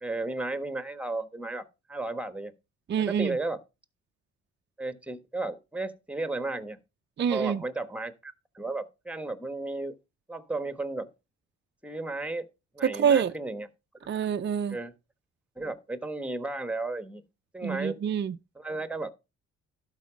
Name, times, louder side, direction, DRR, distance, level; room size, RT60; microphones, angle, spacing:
voice 1, 0.0-2.5 3.0-3.6 4.8-6.8 7.3-9.9 10.3-11.1 11.8-12.5 12.7-13.7 14.7-14.9 15.6-17.2 17.5-18.0 18.6-19.1, right 2 dB, 5° right, 1.3 m, -34 dB
voice 2, 2.9-3.4 7.2-7.6 12.8-13.3 14.1-14.8 17.6-18.4, right 8 dB, 35° right, 0.5 m, -26 dB
12.0 x 4.8 x 5.1 m
cardioid pair, 90°, 30 cm